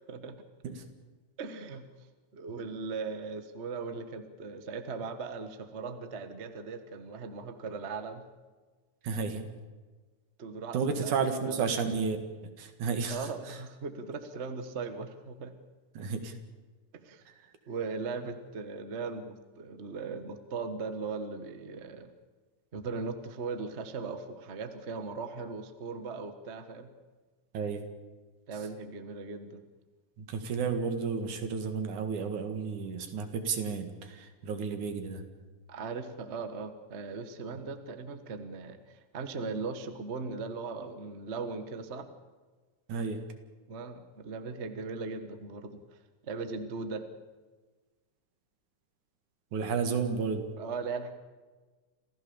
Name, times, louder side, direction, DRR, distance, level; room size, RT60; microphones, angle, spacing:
voice 1, 0.1-0.4 1.4-1.9 2.3-8.2 10.4-11.1 11.4-11.7 13.1-15.6 16.9-17.2 17.7-22.1 22.7-26.9 28.5-29.6 35.7-42.1 43.7-46.0 46.2-47.0 50.6-51.1, right 4 dB, 40° right, 9 dB, 0.9 m, -38 dB
voice 2, 9.0-9.4 10.7-12.2 12.6-13.6 15.9-16.4 17.3-17.5 27.5-27.8 30.2-35.2 42.9-43.2 49.5-50.5, right 5 dB, 75° right, 7 dB, 3.3 m, -32 dB
27.0 x 15.5 x 7.1 m, 1.3 s
omnidirectional pair, 3.6 m